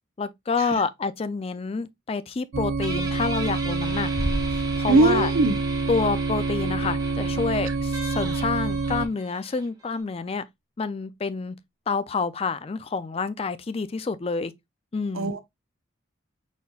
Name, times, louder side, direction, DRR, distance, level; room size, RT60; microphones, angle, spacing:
voice 1, 0.2-4.1 4.5-5.3 5.9-10.4 10.8-11.6 11.9-14.5 14.9-15.3, left 4 dB, 30° left, 0.3 m, -28 dB
sound 1, 2.5-9.1, right 3 dB, 60° right, 0.5 m, -27 dB
Guitar, 2.8-10.0, right 1 dB, 20° right, 1.1 m, -38 dB
Bass drum, 4.2-5.6, right 1 dB, 45° left, 1.4 m, -32 dB
voice 2, 4.9-5.5 7.7-7.8 15.1-15.4, right 2 dB, 90° right, 0.8 m, -20 dB
5.3 x 4.2 x 2.3 m
head